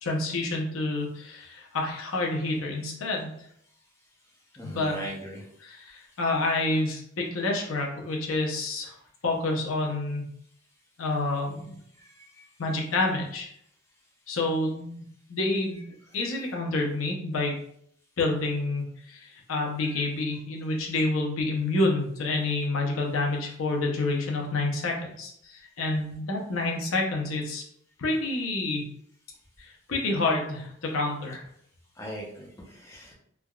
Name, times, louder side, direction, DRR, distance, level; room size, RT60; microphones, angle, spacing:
voice 1, 0.0-3.3 4.6-5.0 5.6-9.0 9.2-10.2 11.0-11.7 12.6-13.5 14.3-15.0 15.3-15.8 16.1-17.5 18.2-27.6 28.0-28.9 29.6-31.4, left 2 dB, 90° left, 0 dB, 0.6 m, -28 dB
voice 2, 4.6-5.4 12.0-12.1 12.4-12.5 32.0-33.1, right 1 dB, 15° left, -4 dB, 0.6 m, -39 dB
3.3 x 2.3 x 2.2 m, 0.68 s
head